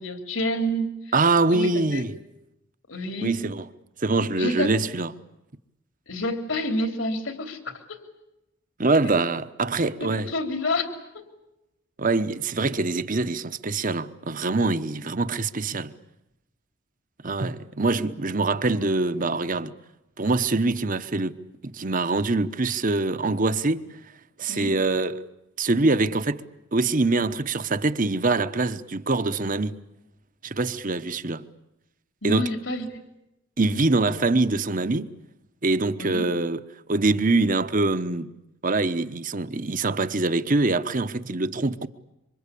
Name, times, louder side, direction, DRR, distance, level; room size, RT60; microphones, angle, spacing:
voice 1, 0.0-0.9 1.5-2.0 2.9-3.4 4.4-4.7 6.1-7.8 9.0-9.1 10.0-10.9 11.1-11.3 24.5-24.8 32.2-33.0 36.0-36.3, left 1 dB, 65° left, 3.4 m, -28 dB
voice 2, 1.1-2.1 3.2-3.7 4.0-5.1 8.8-10.3 12.0-15.9 17.2-19.7 20.2-21.3 21.6-23.9 24.4-25.1 25.6-26.4 26.7-29.8 30.4-31.4 32.2-32.5 33.6-35.1 35.6-36.6 36.9-38.3 38.6-41.9, right 3 dB, 40° right, 1.1 m, -24 dB
27.0 x 25.0 x 8.5 m
head